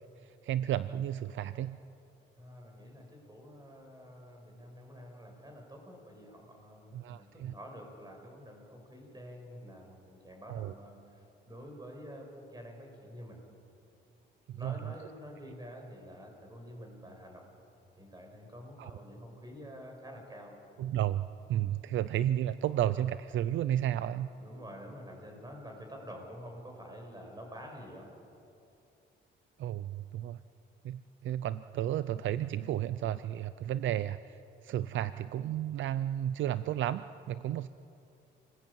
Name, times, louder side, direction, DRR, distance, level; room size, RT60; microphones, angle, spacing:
voice 1, 0.4-1.8 6.9-7.5 10.5-10.7 14.5-14.8 18.8-18.9 20.8-24.3 29.6-30.4 30.8-34.4 34.6-37.7, right 11 dB, 75° right, 14 dB, 0.6 m, -32 dB
voice 2, 2.4-13.4 14.5-17.6 18.0-20.6 24.3-28.1, equal, 20° right, 2 dB, 7.5 m, -48 dB
28.5 x 20.5 x 9.0 m, 2.7 s
cardioid pair, 90°, 20 cm